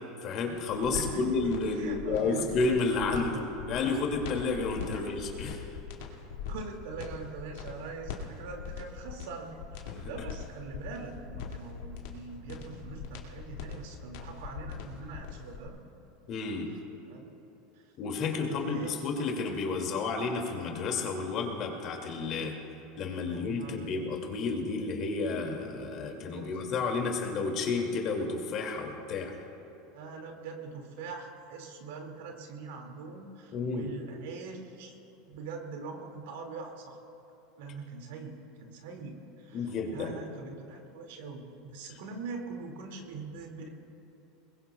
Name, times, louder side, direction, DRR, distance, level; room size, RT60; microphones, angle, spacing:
voice 1, 0.2-5.6 9.9-10.0 16.3-16.7 18.0-22.5 23.0-29.3 33.5-33.9 39.5-40.2, left 4 dB, 45° left, 2 dB, 2.4 m, -31 dB
sound 1, 0.5-15.7, left 7 dB, 75° left, 2.3 m, -41 dB
voice 2, 0.9-1.2 1.6-2.6 3.1-3.5 4.9-5.2 6.5-15.8 17.1-17.3 17.7-17.9 18.2-18.9 23.2-23.9 26.3-27.2 29.9-35.0 35.3-37.0 37.6-43.7, right 4 dB, 80° right, 2 dB, 2.2 m, -43 dB
21.5 x 21.0 x 2.3 m, 2.9 s
supercardioid pair, 115°, 0 cm